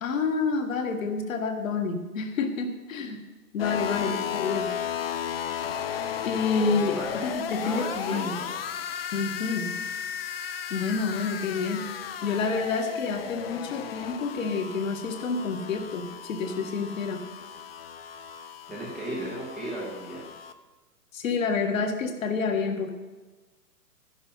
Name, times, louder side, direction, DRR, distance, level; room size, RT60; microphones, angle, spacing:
voice 1, 0.0-3.2 3.5-4.7 6.2-8.4 9.1-9.8 10.7-11.9 12.2-17.2 21.1-22.9, left 4 dB, 55° left, 5 dB, 1.8 m, -28 dB
sound 1, 3.6-20.5, left 8 dB, 40° left, 0.6 m, -35 dB
voice 2, 3.9-4.2 6.7-7.3 7.6-8.5 18.7-20.2, right 1 dB, ahead, -5 dB, 0.6 m, -36 dB
12.0 x 10.5 x 5.5 m, 1.3 s
hypercardioid pair, 150°, 48 cm